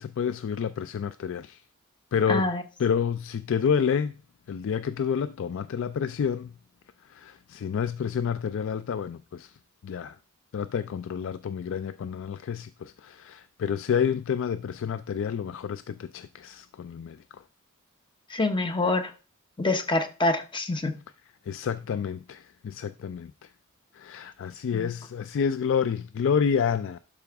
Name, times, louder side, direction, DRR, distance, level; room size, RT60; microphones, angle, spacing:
voice 1, 0.0-1.6 2.1-2.5 2.8-4.1 4.5-6.5 7.1-9.5 9.8-10.2 10.5-17.2 21.5-23.3 23.9-27.0, left 7 dB, 60° left, 0.3 m, -29 dB
voice 2, 2.3-2.6 18.3-19.1 19.6-20.9 24.7-24.9, left 2 dB, 20° left, 0.8 m, -26 dB
11.5 x 4.9 x 3.5 m
head